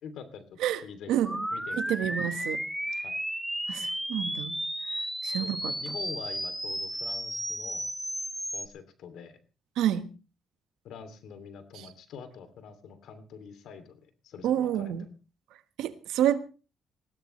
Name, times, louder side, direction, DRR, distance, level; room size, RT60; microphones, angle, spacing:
voice 1, 0.0-1.2 1.5-1.9 3.0-3.2 5.4-5.5 5.8-7.9 8.5-9.4 10.8-15.1, left 6 dB, 80° left, 10 dB, 2.9 m, -45 dB
voice 2, 1.1-1.5 1.7-2.6 3.7-4.5 5.2-5.7 9.8-10.1 11.7-11.9 14.4-15.0 15.8-16.4, right 11 dB, 90° right, 11 dB, 1.4 m, -28 dB
sound 1, 1.2-8.7, equal, ahead, 1.8 m, -33 dB
20.0 x 16.0 x 3.3 m, 0.34 s
cardioid pair, 90°, 0 cm